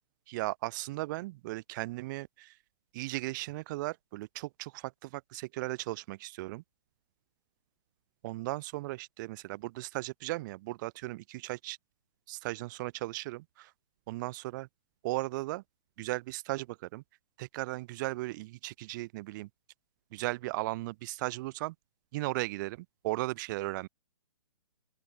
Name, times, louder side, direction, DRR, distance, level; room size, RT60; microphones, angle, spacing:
voice 1, 0.3-2.5 2.9-6.6 8.2-11.8 12.3-13.7 14.1-14.7 15.0-15.6 16.0-17.0 17.4-19.5 20.1-21.7 22.1-23.9, right 20 dB, 35° right, 1.0 m, -36 dB
open air
figure-of-eight pair, 135°, 18 cm